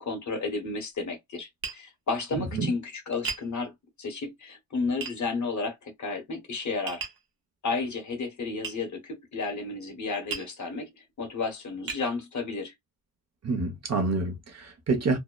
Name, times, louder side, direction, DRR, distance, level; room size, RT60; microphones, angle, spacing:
voice 1, 0.0-3.7 4.0-7.0 7.6-12.7, left 3 dB, 60° left, 1.0 m, -32 dB
Tap, 1.6-1.8 3.3-3.5 5.0-5.2 6.9-7.2 8.6-8.8 10.3-10.5 11.2-11.3 11.9-12.1, right 6 dB, 85° right, 0.9 m, -35 dB
voice 2, 2.4-2.7 13.4-15.2, right 3 dB, 50° right, 0.7 m, -28 dB
2.7 x 2.0 x 2.2 m
wide cardioid pair, 95°, 33 cm